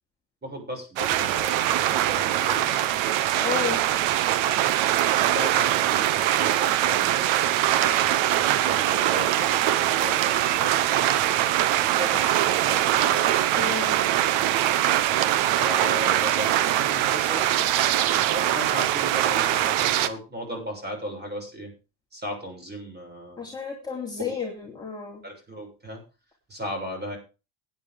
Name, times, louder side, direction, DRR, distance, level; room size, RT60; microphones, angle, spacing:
voice 1, 0.4-2.7 3.4-3.7 5.2-10.7 11.6-13.8 14.3-14.5 15.6-17.5 18.3-21.7 22.1-23.5 25.2-26.0 26.5-27.2, equal, 20° right, 4 dB, 6.5 m, -36 dB
sound 1, 1.0-20.1, right 12 dB, 75° right, 1.1 m, -22 dB
voice 2, 3.4-3.8 13.6-14.0 23.4-25.2, left 6 dB, 10° left, -3 dB, 3.4 m, -32 dB
16.0 x 9.9 x 3.6 m, 0.31 s
cardioid pair, 115°, 47 cm